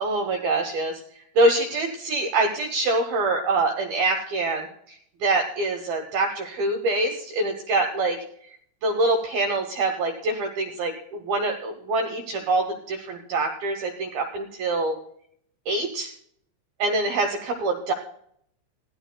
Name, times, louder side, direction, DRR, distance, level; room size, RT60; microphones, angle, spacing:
voice 1, 0.0-1.0 1.4-4.7 5.2-8.2 8.8-10.9 11.2-14.9 15.7-16.1 16.8-17.9, right 2 dB, 70° right, 3 dB, 2.4 m, -25 dB
27.5 x 17.0 x 2.2 m, 0.66 s
omnidirectional pair, 5.6 m